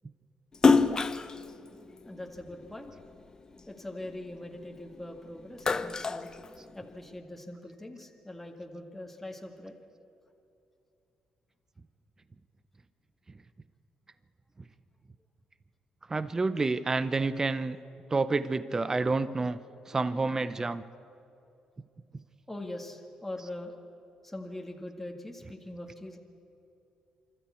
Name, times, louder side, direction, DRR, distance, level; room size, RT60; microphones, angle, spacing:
Splash splatter, 0.5-3.1 3.6-5.0 5.4-7.1, left 4 dB, 35° left, 0.9 m, -27 dB
voice 1, 2.0-2.9 3.7-6.3 6.7-9.8 22.5-23.7 24.2-26.2, left 1 dB, 10° left, 1 dB, 1.9 m, -42 dB
voice 2, 16.1-17.8 18.1-19.6 19.9-20.8 23.4-23.5, right 3 dB, 25° right, 13 dB, 0.7 m, -29 dB
25.5 x 13.0 x 8.4 m, 2.7 s
cardioid pair, 80°, 2 cm